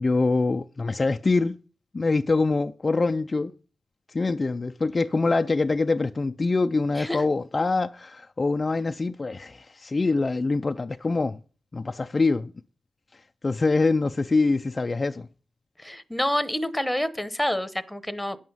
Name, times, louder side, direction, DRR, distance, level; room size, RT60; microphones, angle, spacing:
voice 1, 0.0-1.6 1.9-3.5 4.1-11.4 11.7-12.5 13.4-15.3, left 3 dB, 35° left, 0.4 m, -24 dB
voice 2, 15.8-18.4, left 1 dB, 5° left, 0.9 m, -28 dB
9.9 x 7.8 x 5.5 m
cardioid pair, 85°, 0 cm